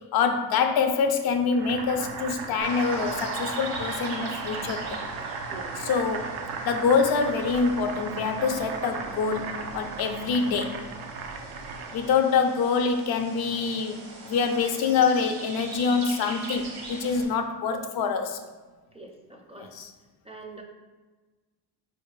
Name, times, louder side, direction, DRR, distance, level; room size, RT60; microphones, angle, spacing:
voice 1, 0.1-5.0 5.8-6.3 6.6-10.8 11.9-14.0 14.3-18.4 19.6-19.9, left 5 dB, 60° left, 6 dB, 0.5 m, -25 dB
Boiling, 1.5-12.2, right 5 dB, 90° right, 0.5 m, -36 dB
sound 1, 2.6-17.3, right 3 dB, 60° right, 0.9 m, -40 dB
voice 2, 18.9-19.7 20.2-20.6, right 2 dB, 15° right, 1 dB, 0.4 m, -44 dB
4.1 x 2.5 x 3.1 m, 1.3 s
cardioid pair, 95°, 42 cm